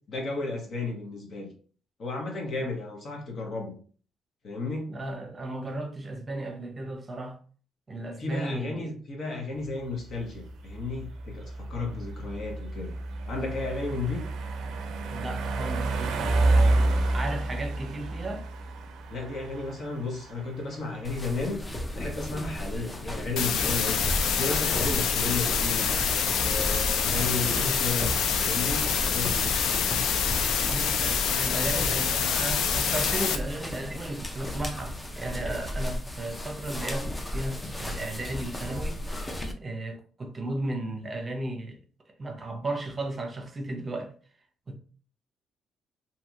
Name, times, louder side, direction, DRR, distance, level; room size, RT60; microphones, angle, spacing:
voice 1, 0.1-1.5 2.0-3.7 4.4-5.0 8.2-12.9 13.3-14.2 19.1-21.7 21.9-24.0 24.4-25.9 26.4-29.5, left 3 dB, 60° left, 0.9 m, -33 dB
voice 2, 4.9-7.4 7.9-8.9 15.1-18.4 27.1-27.9 30.6-39.0 39.6-41.8 42.2-44.1 44.7-44.8, right 2 dB, 30° right, 0.7 m, -35 dB
sound 1, 9.7-21.4, right 2 dB, 80° right, 0.4 m, -29 dB
sound 2, 21.0-39.5, left 1 dB, 15° left, 0.5 m, -35 dB
sound 3, 23.4-33.4, left 6 dB, 80° left, 0.4 m, -26 dB
2.8 x 2.8 x 2.4 m
cardioid pair, 90°, 0 cm